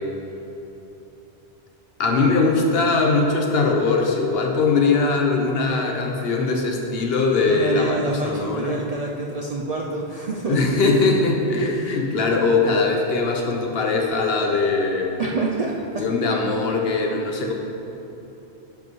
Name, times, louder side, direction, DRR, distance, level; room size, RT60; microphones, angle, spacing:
voice 1, 2.0-8.0 8.2-8.8 10.5-15.1 16.0-17.5, left 3 dB, 65° left, 1 dB, 1.0 m, -21 dB
voice 2, 7.5-10.6 11.9-12.0 15.2-16.0, right 2 dB, 50° right, -2 dB, 0.5 m, -27 dB
11.0 x 5.3 x 3.1 m, 3.0 s
omnidirectional pair, 1.1 m